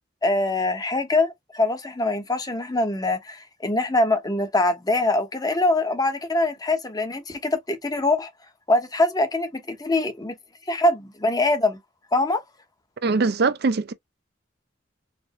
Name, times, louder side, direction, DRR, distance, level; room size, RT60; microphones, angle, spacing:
voice 1, 0.2-8.3 8.7-10.4 10.7-11.8 12.1-12.4, left 2 dB, 20° left, 0.9 m, -23 dB
voice 2, 13.0-13.9, right 4 dB, 60° right, 0.6 m, -22 dB
4.3 x 2.5 x 3.1 m
head